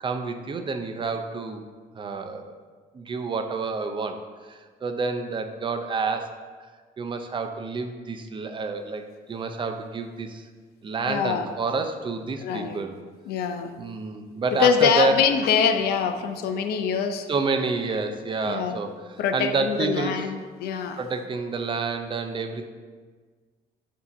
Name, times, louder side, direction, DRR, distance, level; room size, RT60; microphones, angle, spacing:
voice 1, 0.0-1.6 2.0-2.5 2.9-4.2 4.4-6.3 7.0-10.5 10.8-13.0 13.8-15.2 17.3-20.3 21.0-22.7, right 4 dB, 30° right, 6 dB, 0.5 m, -29 dB
voice 2, 11.1-11.5 12.4-12.8 13.3-13.8 14.6-17.3 18.4-18.8 19.2-21.0, left 7 dB, 70° left, 7 dB, 0.5 m, -24 dB
7.1 x 2.8 x 5.2 m, 1.5 s
cardioid pair, 110°, 17 cm